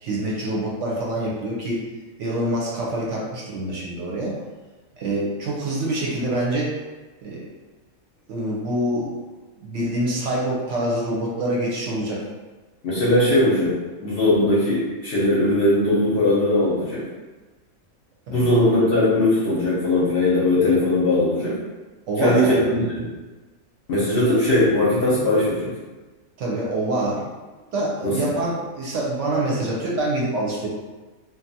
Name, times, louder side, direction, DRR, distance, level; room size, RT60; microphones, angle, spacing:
voice 1, 0.0-1.8 2.2-4.3 5.0-6.7 7.2-7.5 8.3-9.2 9.6-12.3 18.3-18.5 22.1-22.9 26.4-27.2 27.7-30.7, right 1 dB, 70° right, -4 dB, 0.9 m, -25 dB
voice 2, 12.8-13.7 14.0-17.0 18.3-21.6 22.2-22.6 23.0-23.1 23.9-25.7 28.0-28.4, left 1 dB, 55° left, -8 dB, 0.7 m, -19 dB
2.6 x 2.2 x 2.7 m, 1.2 s
omnidirectional pair, 1.5 m